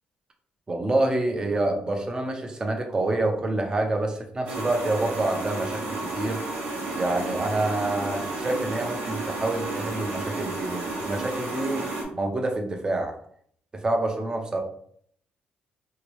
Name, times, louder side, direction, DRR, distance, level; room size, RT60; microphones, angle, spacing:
voice 1, 0.7-6.4 6.9-11.8 12.1-13.2 13.7-14.6, right 2 dB, 25° right, 3 dB, 0.6 m, -27 dB
sound 1, 4.5-12.0, right 2 dB, 85° right, 1.0 m, -32 dB
3.0 x 2.8 x 3.1 m, 0.64 s
cardioid pair, 110°, 3 cm